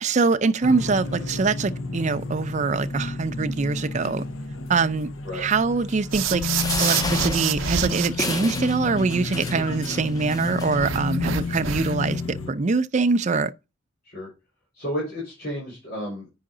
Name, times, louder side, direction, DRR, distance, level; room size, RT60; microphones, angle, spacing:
voice 1, 0.0-4.3 4.7-6.4 6.8-13.5, right 4 dB, 40° right, 0.5 m, -24 dB
sound 1, 0.6-12.5, left 3 dB, 90° left, 0.9 m, -31 dB
sound 2, 6.1-8.1 10.8-12.1, right 8 dB, 85° right, 0.6 m, -27 dB
sound 3, 6.5-11.0 11.7-11.8 12.1-12.2, left 2 dB, 20° left, 0.7 m, -32 dB
voice 2, 14.7-16.4, equal, 55° left, 5.3 m, -32 dB
8.6 x 5.6 x 3.8 m
head